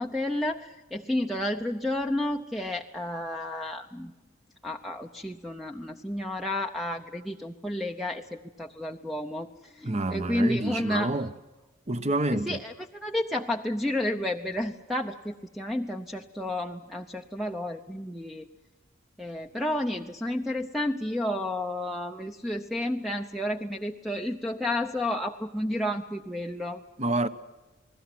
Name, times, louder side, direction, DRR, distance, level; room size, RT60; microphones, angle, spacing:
voice 1, 0.0-4.1 4.6-11.2 12.3-18.5 19.2-26.8, left 1 dB, ahead, 0.7 m, -31 dB
voice 2, 9.8-11.3 11.9-12.6 27.0-27.3, right 2 dB, 35° right, 1.0 m, -28 dB
29.5 x 20.5 x 6.1 m
head